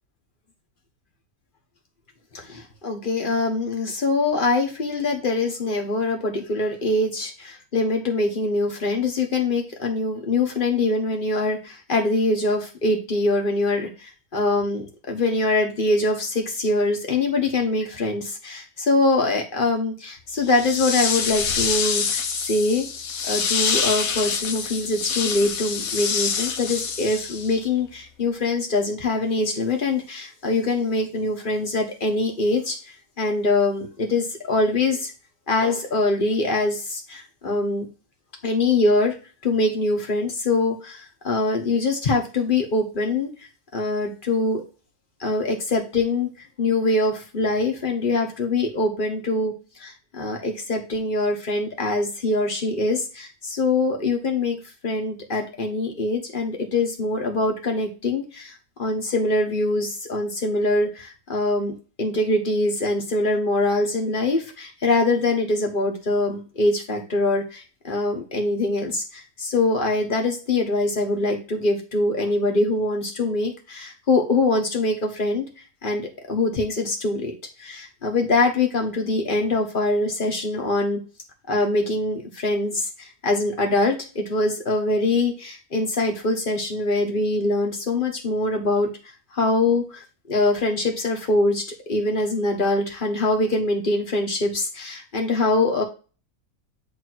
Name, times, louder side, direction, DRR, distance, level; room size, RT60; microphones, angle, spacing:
voice 1, 2.3-22.9 23.3-35.1 35.5-37.9 38.4-39.1 39.4-44.6 45.2-49.5 49.8-54.6 54.8-61.7 62.0-75.4 75.8-77.3 77.6-81.0 81.5-88.9 89.3-95.8, left 2 dB, 35° left, 2 dB, 1.7 m, -23 dB
sound 1, 20.4-27.7, left 6 dB, 70° left, 1.4 m, -26 dB
8.6 x 3.4 x 4.6 m, 0.34 s
omnidirectional pair, 1.6 m